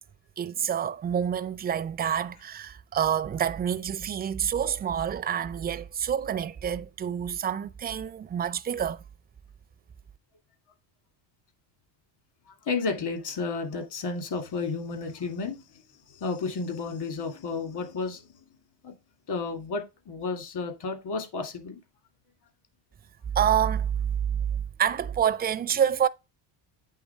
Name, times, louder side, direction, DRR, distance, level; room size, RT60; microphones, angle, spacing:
voice 1, 0.4-9.0 23.4-23.9 24.3-24.4 24.8-26.1, right 9 dB, 20° right, 0.4 m, -27 dB
voice 2, 12.5-15.8 16.1-18.5 18.8-18.9 19.3-21.8, left 4 dB, 55° left, 2.7 m, -32 dB
8.5 x 3.5 x 4.5 m
cardioid pair, 110°, 48 cm